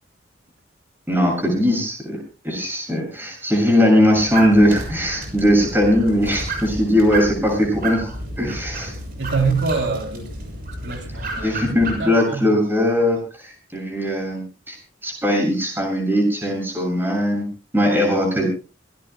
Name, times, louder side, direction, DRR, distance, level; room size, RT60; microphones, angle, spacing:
voice 1, 1.1-2.2 2.4-8.1 8.4-8.9 11.4-14.4 14.7-14.8 15.0-17.5 17.7-18.5, equal, 10° right, 0 dB, 7.0 m, -19 dB
sound 1, 4.2-12.0, right 2 dB, 55° right, 7.0 m, -31 dB
voice 2, 9.2-10.3 10.8-11.7 12.0-12.5, right 4 dB, 80° right, 3 dB, 3.2 m, -25 dB
26.0 x 18.5 x 2.2 m, 0.33 s
head